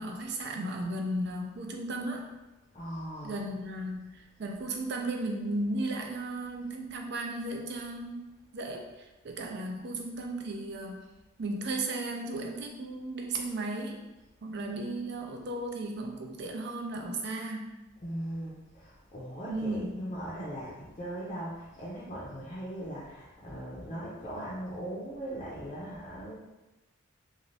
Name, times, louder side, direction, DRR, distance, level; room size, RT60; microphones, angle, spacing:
voice 1, 0.0-2.3 3.2-8.3 8.5-11.1 11.4-14.0 14.4-17.7 19.5-20.1, right 2 dB, 55° right, 2 dB, 0.4 m, -35 dB
voice 2, 2.7-3.4 18.0-26.4, right 1 dB, 30° left, -8 dB, 0.5 m, -39 dB
2.6 x 2.5 x 3.2 m, 1.1 s
head